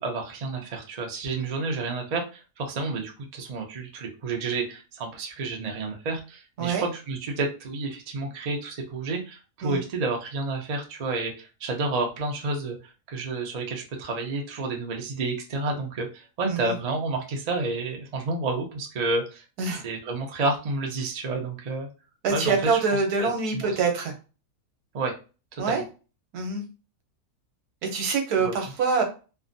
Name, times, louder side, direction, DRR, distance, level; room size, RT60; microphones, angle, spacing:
voice 1, 0.0-12.8 13.1-19.4 19.8-21.9 22.3-23.8 24.9-25.1 25.5-25.8 28.4-28.6, right 3 dB, 50° right, 1 dB, 0.4 m, -30 dB
voice 2, 22.2-24.1 25.6-25.8 26.3-26.6 27.8-29.0, right 4 dB, 85° right, 4 dB, 1.3 m, -25 dB
3.3 x 2.1 x 2.6 m, 0.33 s
omnidirectional pair, 1.6 m